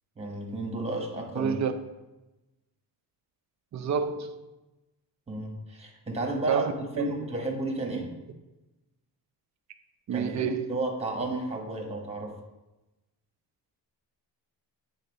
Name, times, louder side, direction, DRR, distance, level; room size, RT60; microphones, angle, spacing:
voice 1, 0.2-1.6 5.3-6.7 7.0-8.1 10.1-12.3, right 2 dB, 15° right, 1.3 m, -32 dB
voice 2, 1.3-1.7 3.7-4.3 6.5-7.1 10.1-10.7, right 7 dB, 40° right, 0.6 m, -28 dB
8.5 x 3.8 x 5.3 m
cardioid pair, 155°, 42 cm